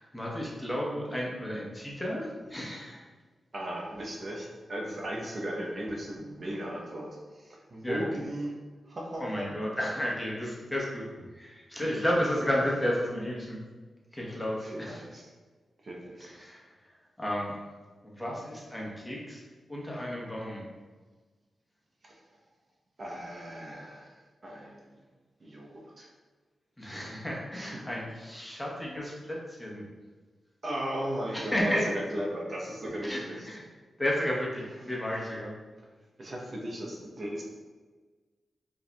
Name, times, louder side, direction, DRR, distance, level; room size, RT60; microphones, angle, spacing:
voice 1, 0.0-3.0 7.8-8.0 9.2-13.6 14.1-15.0 16.2-16.6 17.2-17.5 18.0-19.4 19.7-20.6 26.8-29.8 31.3-31.9 33.0-33.6 34.0-35.5, equal, 15° left, -4 dB, 1.0 m, -32 dB
voice 2, 3.5-8.5 8.9-9.5 11.8-12.0 14.6-15.3 15.8-16.3 22.0-22.1 23.0-25.0 25.4-26.1 27.5-27.8 30.6-33.5 36.2-37.4, right 1 dB, 55° right, -2 dB, 0.7 m, -37 dB
4.6 x 2.7 x 2.2 m, 1.4 s
cardioid pair, 50°, 0 cm